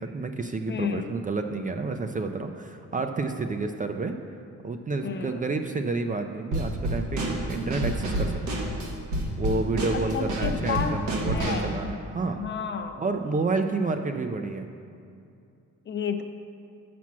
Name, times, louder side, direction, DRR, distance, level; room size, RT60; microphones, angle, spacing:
voice 1, 0.0-4.2 4.6-8.7 9.4-12.4 13.0-14.7, right 3 dB, 25° right, 6 dB, 0.5 m, -30 dB
voice 2, 0.7-1.1 5.0-5.5 9.9-11.7 12.3-13.0 15.9-16.2, left 7 dB, 40° left, 8 dB, 0.6 m, -32 dB
Drum kit / Snare drum, 6.5-11.7, right 1 dB, 85° right, 1.5 m, -29 dB
7.1 x 6.0 x 6.0 m, 2.5 s
cardioid pair, 90°, 30 cm